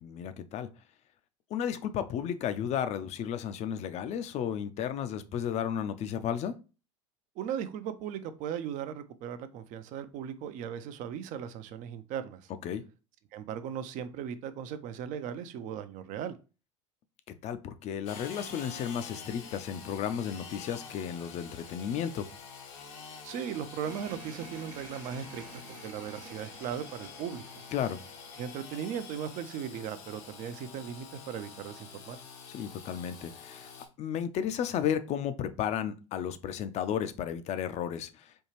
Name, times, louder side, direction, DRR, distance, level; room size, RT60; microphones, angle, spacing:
voice 1, 0.0-0.7 1.5-6.5 12.6-12.8 17.4-22.3 27.7-28.0 32.5-33.7 34.0-38.1, left 9 dB, 40° left, 0.5 m, -33 dB
voice 2, 7.4-12.5 13.3-16.4 23.2-25.4 25.8-27.4 28.4-32.2, right 8 dB, 50° right, 0.5 m, -37 dB
Engine / Sawing, 18.1-33.9, left 6 dB, 70° left, 0.9 m, -47 dB
sound 1, 23.8-29.2, right 6 dB, 70° right, 0.8 m, -51 dB
4.4 x 2.4 x 3.1 m
hypercardioid pair, 75°, 17 cm